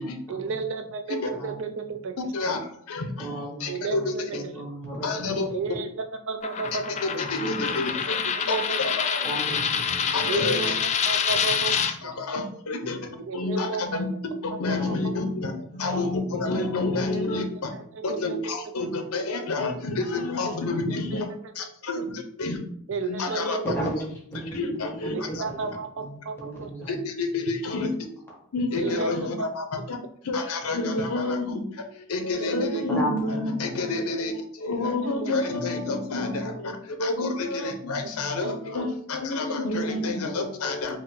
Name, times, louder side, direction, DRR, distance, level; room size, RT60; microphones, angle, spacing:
voice 1, 0.3-2.1 3.7-4.2 5.5-7.0 8.3-8.9 10.2-11.7 12.2-12.3 13.2-14.0 14.7-15.1 17.1-17.4 17.7-18.5 20.8-21.2 22.0-22.1 22.9-23.6 25.1-26.7 28.8-29.7 32.3-32.7 34.6-35.3 38.4-38.5 38.8-38.9, right 5 dB, 60° right, 7 dB, 0.5 m, -33 dB
voice 2, 2.3-3.3 3.6-4.4 5.0-5.5 7.0-8.2 8.5-9.2 10.1-10.7 11.3-11.4 11.7-13.0 13.3-14.0 14.4-17.7 18.0-21.3 21.5-22.6 23.1-23.6 24.5-25.4 26.9-27.9 28.5-30.0 30.2-41.0, left 2 dB, 80° left, 5 dB, 0.7 m, -29 dB
voice 3, 3.2-5.8 7.1-8.0 9.2-10.0 10.3-10.7 11.4-12.2 12.8-13.1 14.7-16.5 16.9-17.1 23.7-24.0 24.3-27.0 32.9-33.7, right 1 dB, 10° left, -4 dB, 1.3 m, -36 dB
Coin (dropping), 6.4-11.9, left 7 dB, 30° left, 0.3 m, -26 dB
5.3 x 2.1 x 3.8 m, 0.63 s
head